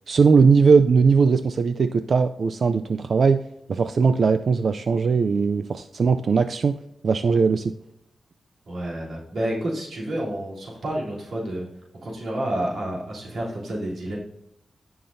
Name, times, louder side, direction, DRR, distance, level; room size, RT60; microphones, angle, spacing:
voice 1, 0.1-3.4 3.7-6.8 7.0-7.7, right 5 dB, 50° right, 9 dB, 0.3 m, -19 dB
voice 2, 8.7-11.7 12.0-14.2, right 1 dB, 65° right, -4 dB, 3.2 m, -29 dB
16.0 x 5.8 x 2.6 m, 0.80 s
wide cardioid pair, 175°, 0 cm